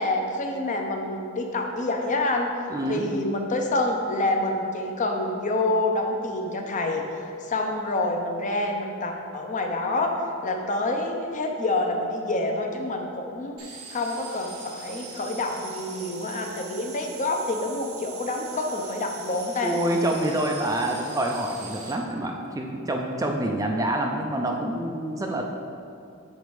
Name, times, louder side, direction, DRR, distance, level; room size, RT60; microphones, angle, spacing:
voice 1, 0.0-2.5 2.9-10.1 10.4-13.6 13.9-19.7, left 2 dB, 35° left, 3 dB, 0.6 m, -27 dB
voice 2, 2.7-3.1 19.6-25.4, right 1 dB, 15° right, 1 dB, 0.4 m, -27 dB
sound 1, 13.6-21.9, right 5 dB, 75° right, 1.0 m, -42 dB
6.6 x 4.2 x 4.7 m, 2.5 s
head